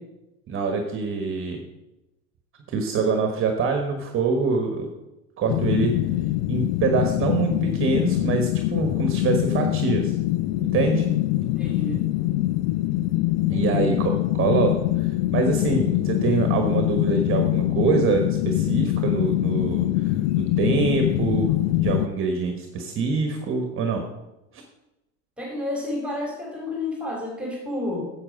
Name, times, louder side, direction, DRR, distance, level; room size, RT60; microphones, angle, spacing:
voice 1, 0.5-1.6 2.7-4.9 5.4-5.9 6.5-10.1 10.6-11.0 13.5-24.0, right 4 dB, 35° right, 4 dB, 1.3 m, -25 dB
sound 1, 5.5-22.1, left 16 dB, 60° left, 0.5 m, -24 dB
voice 2, 11.6-12.0 13.5-14.3 25.4-28.1, left 2 dB, 5° right, -1 dB, 2.8 m, -31 dB
8.7 x 7.4 x 5.2 m, 0.96 s
supercardioid pair, 115°, 34 cm